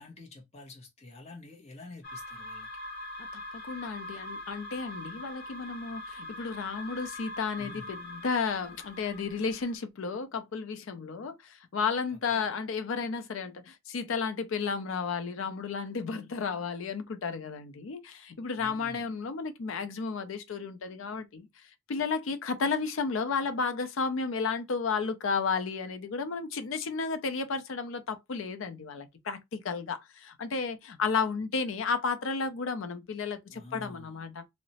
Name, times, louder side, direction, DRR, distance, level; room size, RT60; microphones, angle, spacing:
voice 1, 0.0-2.7 7.6-8.0 12.1-12.5 18.6-19.2 33.5-34.2, left 2 dB, 30° left, 0.7 m, -48 dB
sound 1, 2.0-9.8, left 1 dB, 55° left, 1.0 m, -43 dB
voice 2, 3.2-21.5 21.9-34.4, left 5 dB, 70° left, 0.4 m, -33 dB
2.8 x 2.1 x 2.7 m
head